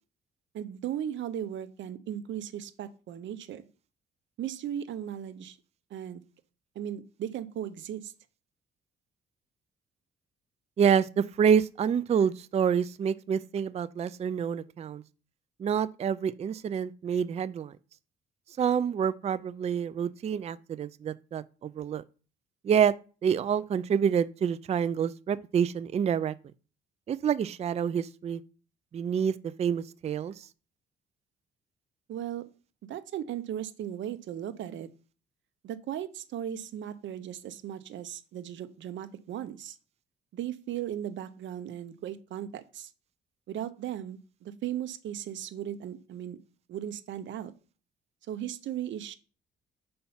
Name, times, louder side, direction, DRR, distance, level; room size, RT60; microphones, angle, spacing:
voice 1, 0.5-3.6 4.4-5.6 5.9-6.2 6.7-8.1 32.1-32.4 32.8-34.9 35.6-39.8 40.3-42.9 43.5-46.4 46.7-47.5 48.3-49.1, right 10 dB, 70° right, 0.7 m, -37 dB
voice 2, 10.8-15.0 15.6-17.7 18.6-22.0 22.6-22.9 23.2-26.3 27.1-28.4 28.9-30.5, right 7 dB, 35° right, 0.4 m, -27 dB
5.5 x 4.3 x 5.5 m
cardioid pair, 90°, 20 cm